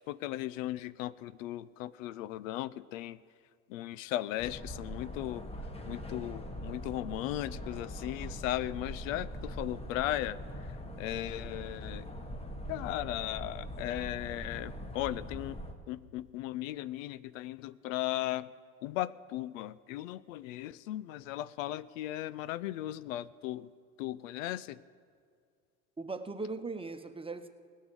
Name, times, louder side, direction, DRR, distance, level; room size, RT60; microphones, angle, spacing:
voice 1, 0.0-3.2 3.7-5.5 5.8-12.1 12.7-15.6 15.9-18.5 18.8-23.7 24.0-24.8, left 14 dB, 80° left, 18 dB, 0.5 m, -37 dB
sound 1, 4.4-15.7, left 1 dB, 15° left, 1.5 m, -42 dB
voice 2, 26.0-27.5, right 3 dB, 15° right, 9 dB, 1.0 m, -39 dB
17.5 x 6.4 x 9.1 m, 2.2 s
hypercardioid pair, 75°, 39 cm